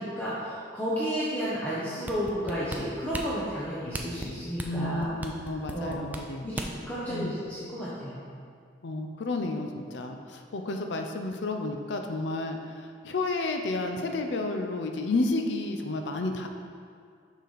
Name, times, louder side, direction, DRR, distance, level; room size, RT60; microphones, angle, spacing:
voice 1, 0.0-5.1 5.7-6.0 6.4-8.3, equal, 10° left, -10 dB, 0.8 m, -32 dB
sound 1, 2.1-6.9 7.4-7.5, right 1 dB, 10° right, 0.3 m, -37 dB
voice 2, 4.7-6.5 7.1-7.3 8.8-16.5, left 2 dB, 75° left, 4 dB, 0.5 m, -31 dB
6.7 x 5.0 x 4.0 m, 2.2 s
head